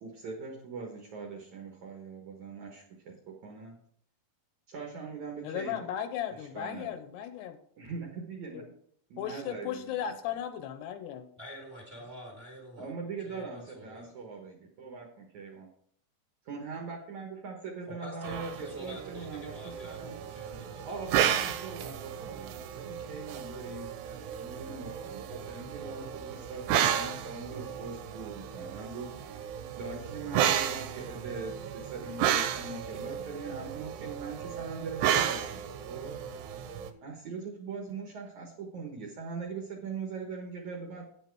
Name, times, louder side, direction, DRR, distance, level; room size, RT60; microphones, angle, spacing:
voice 1, 0.0-3.8 4.7-5.9 6.4-7.0 7.8-8.6 9.1-10.2 12.8-15.7 16.5-20.2 20.8-29.5 29.8-36.2 37.0-41.0, right 4 dB, 60° right, 1 dB, 2.1 m, -41 dB
voice 2, 5.4-7.5 8.5-8.6 9.2-11.3, left 10 dB, 85° left, 9 dB, 2.8 m, -36 dB
voice 3, 11.4-12.9 13.2-14.1 17.9-21.2, equal, 20° right, 0 dB, 1.9 m, -46 dB
sound 1, 18.2-36.9, right 9 dB, 85° right, 2.8 m, -33 dB
9.1 x 8.3 x 4.6 m, 0.65 s
omnidirectional pair, 4.9 m